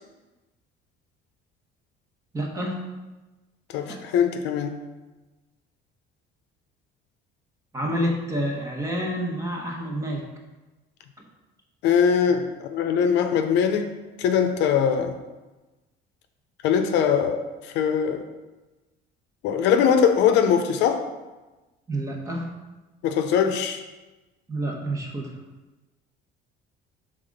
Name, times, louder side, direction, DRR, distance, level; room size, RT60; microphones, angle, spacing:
voice 1, 2.3-2.8 3.9-4.0 7.7-10.2 11.2-11.3 21.9-22.6 24.5-25.4, right 1 dB, 15° right, 0 dB, 1.0 m, -28 dB
voice 2, 3.7-4.8 11.8-13.9 14.2-15.2 16.6-18.2 19.4-21.0 23.0-23.8, left 7 dB, 70° left, 6 dB, 0.7 m, -21 dB
5.8 x 3.6 x 5.2 m, 1.1 s
cardioid pair, 150°, 19 cm